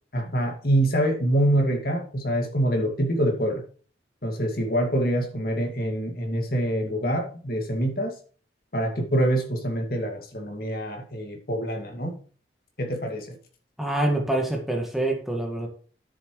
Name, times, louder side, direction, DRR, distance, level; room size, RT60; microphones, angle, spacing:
voice 1, 0.1-3.6 4.2-8.1 8.7-12.2 12.8-13.3, right 1 dB, 55° left, 3 dB, 2.2 m, -25 dB
voice 2, 13.8-15.7, right 1 dB, ahead, 1 dB, 1.8 m, -26 dB
10.0 x 7.8 x 3.2 m, 0.41 s
head